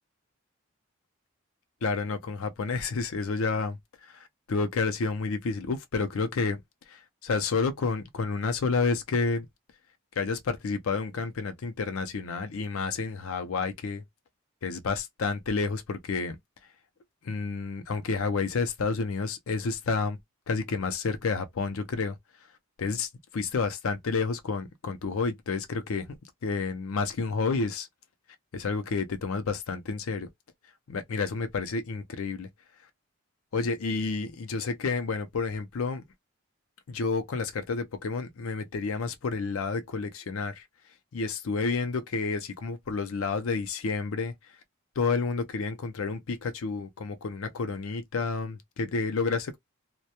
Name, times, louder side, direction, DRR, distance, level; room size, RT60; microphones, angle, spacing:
voice 1, 1.8-3.8 4.1-4.2 4.5-6.6 7.2-9.5 10.2-14.0 14.6-16.4 17.2-20.2 20.5-22.2 22.8-23.1 23.3-26.2 26.4-27.9 28.5-30.3 30.9-32.5 33.5-36.0 36.9-40.6 41.1-44.3 45.0-49.6, left 4 dB, 75° left, 0.5 m, -30 dB
2.1 x 2.1 x 2.8 m
head